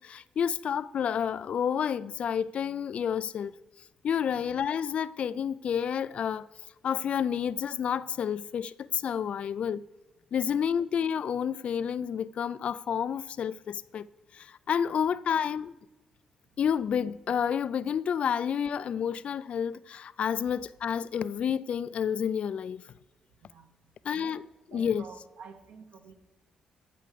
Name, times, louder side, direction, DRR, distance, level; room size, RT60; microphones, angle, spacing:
voice 1, 0.0-3.5 4.0-6.5 6.8-9.8 10.3-14.1 14.3-15.7 16.6-22.8 24.0-24.5 24.7-25.0, left 8 dB, 60° left, 0.3 m, -30 dB
voice 2, 23.3-23.7 24.1-24.4 24.7-26.1, right 5 dB, 75° right, 1.2 m, -50 dB
14.5 x 6.7 x 4.8 m
cardioid pair, 70°, 2 cm